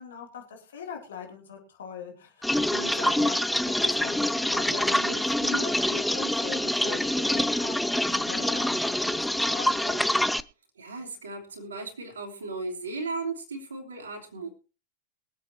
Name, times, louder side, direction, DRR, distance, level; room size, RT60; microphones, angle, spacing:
voice 1, 0.0-10.0, left 6 dB, 65° left, 1 dB, 3.2 m, -40 dB
sound 1, 2.4-10.4, left 1 dB, ahead, 0.5 m, -26 dB
voice 2, 10.8-14.5, right 3 dB, 70° right, 2 dB, 2.9 m, -36 dB
23.0 x 8.4 x 3.0 m, 0.33 s
figure-of-eight pair, 90°, 0 cm